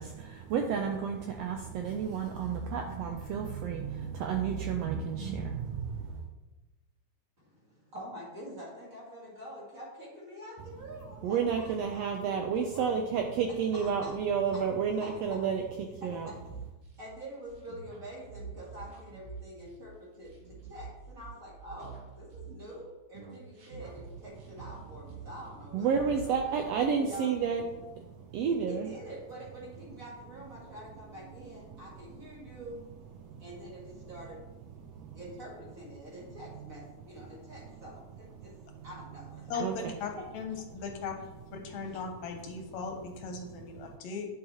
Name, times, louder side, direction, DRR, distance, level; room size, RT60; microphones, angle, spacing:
voice 1, 0.0-6.2 11.2-16.3 25.7-27.7 27.9-28.0 28.3-28.9 33.3-33.4 34.9-35.1 39.6-39.7, right 6 dB, 85° right, 3 dB, 1.4 m, -31 dB
voice 2, 7.4-11.8 12.2-12.9 13.5-14.1 14.5-14.6 15.0-15.4 16.0-16.3 17.0-27.3 28.7-32.8 33.4-34.4 35.1-38.6 38.8-39.6 40.2-40.3 41.9-42.0, equal, 30° right, -5 dB, 2.1 m, -46 dB
sound 1, 16.3-22.8 23.1-25.6 25.9-27.0, right 5 dB, 70° right, 3.1 m, -47 dB
voice 3, 39.5-41.1 41.5-44.3, left 4 dB, 75° left, 4 dB, 1.9 m, -38 dB
8.6 x 6.6 x 2.9 m, 1.1 s
omnidirectional pair, 3.4 m